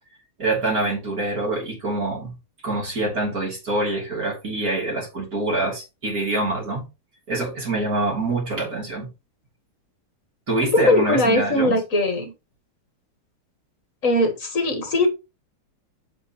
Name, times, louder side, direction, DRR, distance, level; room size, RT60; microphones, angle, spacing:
voice 1, 0.4-2.4 2.6-6.9 7.3-9.1 10.5-11.8, right 2 dB, 40° right, 3.6 m, -25 dB
voice 2, 10.9-12.3 14.0-15.1, left 1 dB, 40° left, 1.6 m, -20 dB
7.9 x 6.8 x 3.0 m
omnidirectional pair, 2.4 m